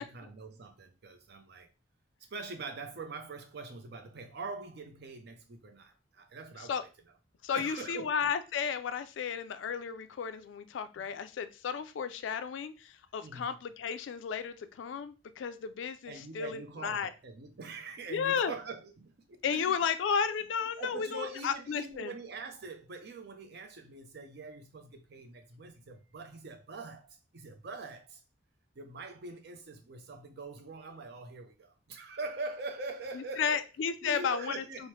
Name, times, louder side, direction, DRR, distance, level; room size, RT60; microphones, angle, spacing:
voice 1, 0.0-1.7 2.3-6.9 7.5-8.1 13.2-13.5 16.1-19.7 20.8-28.2 28.8-33.6 34.0-34.9, right 3 dB, 60° right, 0.6 m, -43 dB
voice 2, 7.4-17.1 18.1-18.5 19.4-22.1 33.1-34.6, left 6 dB, 80° left, 0.3 m, -33 dB
3.0 x 2.0 x 3.1 m
head